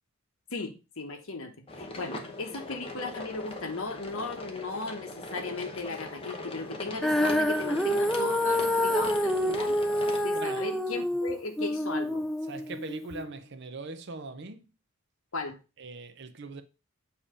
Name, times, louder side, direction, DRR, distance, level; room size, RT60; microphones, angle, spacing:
voice 1, 0.5-9.8 10.2-12.3 15.3-15.6, left 3 dB, 65° left, 1.1 m, -37 dB
sound 1, 1.7-10.3, left 2 dB, 25° left, 0.8 m, -40 dB
Female singing, 7.0-13.2, left 1 dB, ahead, 0.3 m, -27 dB
voice 2, 10.3-10.7 12.4-14.7 15.8-16.6, right 3 dB, 50° right, 0.7 m, -41 dB
7.1 x 2.9 x 5.0 m
head